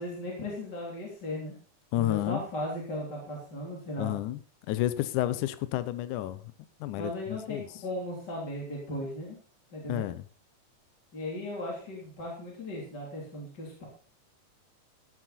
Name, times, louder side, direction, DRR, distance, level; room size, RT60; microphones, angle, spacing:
voice 1, 0.0-1.5 1.9-4.1 7.0-9.4 9.7-10.1 11.1-13.8, left 1 dB, 30° left, -3 dB, 3.9 m, -37 dB
voice 2, 1.9-2.4 4.0-4.4 4.7-6.4 6.8-7.7 9.9-10.2, left 14 dB, 80° left, 14 dB, 2.2 m, -30 dB
15.5 x 9.0 x 4.2 m, 0.41 s
omnidirectional pair, 3.7 m